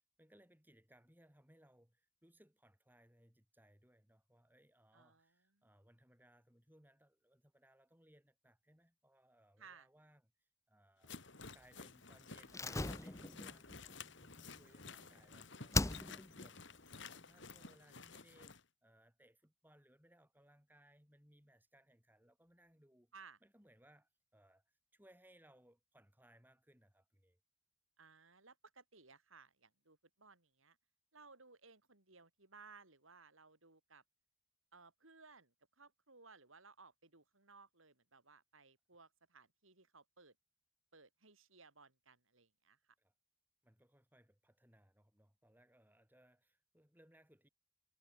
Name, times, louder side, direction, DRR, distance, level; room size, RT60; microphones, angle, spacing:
voice 1, 0.0-15.8 16.1-16.6 16.9-23.1 23.4-27.4 43.0-43.1 43.6-47.5, right 1 dB, 10° right, 7.0 m, -68 dB
voice 2, 4.9-5.6 9.6-9.9 15.0-15.7 23.1-23.4 28.0-30.8 31.1-34.0 34.7-40.3 40.9-42.9, right 4 dB, 75° right, 4.9 m, -62 dB
sound 1, 11.0-18.6, left 4 dB, 60° left, 2.9 m, -53 dB
Slam, 12.5-15.3 15.7-16.5 16.7-16.8, left 2 dB, 15° left, 0.8 m, -39 dB
head